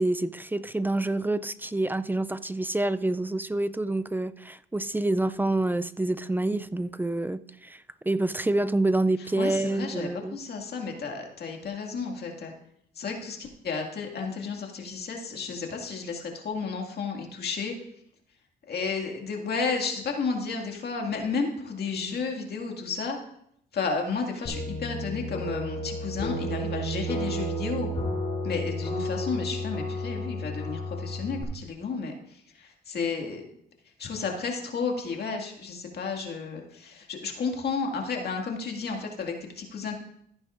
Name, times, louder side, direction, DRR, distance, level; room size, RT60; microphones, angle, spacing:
voice 1, 0.0-10.4, right 2 dB, 10° right, 0.3 m, -27 dB
voice 2, 9.4-12.5 13.0-17.7 18.7-23.2 23.7-27.9 28.4-33.4 34.0-39.9, left 4 dB, 55° left, 2.1 m, -32 dB
sound 1, 24.4-31.4, equal, 30° left, 3.5 m, -32 dB
15.0 x 9.5 x 2.5 m
cardioid pair, 90°, 20 cm